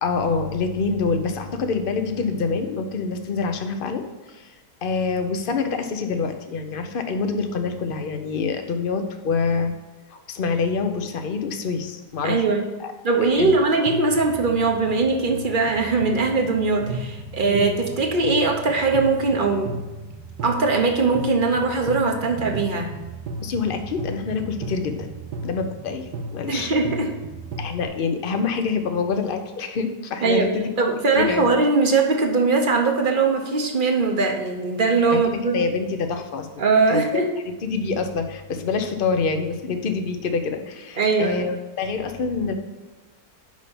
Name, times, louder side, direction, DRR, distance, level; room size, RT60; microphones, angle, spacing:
voice 1, 0.0-4.5 4.8-9.7 10.1-12.9 13.4-13.5 17.4-17.7 23.4-25.1 25.4-26.7 27.6-30.7 31.2-31.5 35.1-35.2 35.5-37.2 37.6-42.5, left 4 dB, 50° left, 7 dB, 0.7 m, -26 dB
voice 2, 12.2-12.7 13.0-19.7 20.4-22.9 26.5-27.1 30.2-30.5 30.8-35.6 36.6-37.3 41.0-41.4, right 3 dB, 40° right, 2 dB, 0.8 m, -21 dB
sound 1, 13.9-27.9, right 2 dB, 75° right, 1.3 m, -35 dB
6.1 x 5.6 x 7.1 m, 1.2 s
omnidirectional pair, 1.8 m